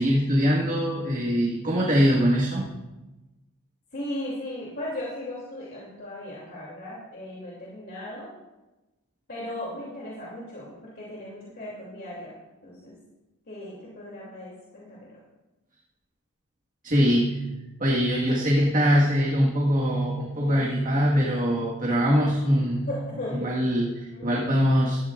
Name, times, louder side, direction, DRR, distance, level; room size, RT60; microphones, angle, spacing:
voice 1, 0.0-2.7 16.8-17.4 17.8-22.9 23.4-25.0, equal, 40° right, -4 dB, 1.7 m, -22 dB
voice 2, 3.9-8.3 9.3-12.3 12.6-13.0 13.5-15.2 20.4-21.3 22.1-22.3 22.9-23.4 24.1-24.3, left 1 dB, 50° left, -6 dB, 3.0 m, -37 dB
16.0 x 13.0 x 2.5 m, 1.1 s
head